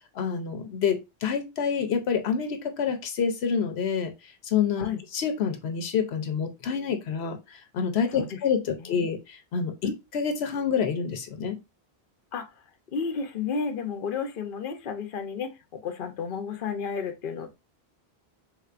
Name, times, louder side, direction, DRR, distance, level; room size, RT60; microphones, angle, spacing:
voice 1, 0.1-4.1 4.4-11.6, left 6 dB, 85° left, 6 dB, 1.0 m, -28 dB
voice 2, 12.9-17.5, left 5 dB, 60° left, 6 dB, 0.9 m, -32 dB
4.5 x 3.6 x 2.4 m, 0.24 s
omnidirectional pair, 1.1 m